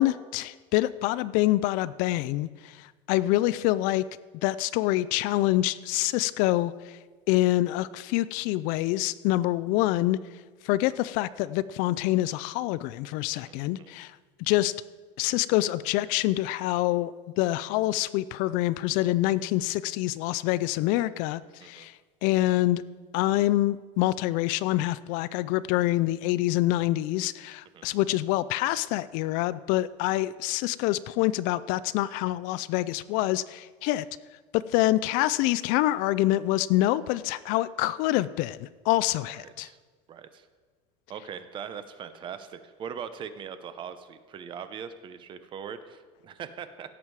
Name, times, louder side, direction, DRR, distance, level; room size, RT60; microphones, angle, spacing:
voice 1, 0.0-4.1 4.4-7.0 7.3-10.2 10.6-14.1 14.4-14.7 15.2-21.9 22.2-22.8 23.1-34.0 34.5-39.7, left 16 dB, 55° left, 17 dB, 0.4 m, -26 dB
voice 2, 13.3-13.9 21.6-21.9 27.7-27.8 39.4-39.8 40.1-40.5 41.1-46.9, right 7 dB, 30° right, 11 dB, 0.7 m, -41 dB
17.0 x 7.4 x 4.7 m, 1.4 s
cardioid pair, 155°, 16 cm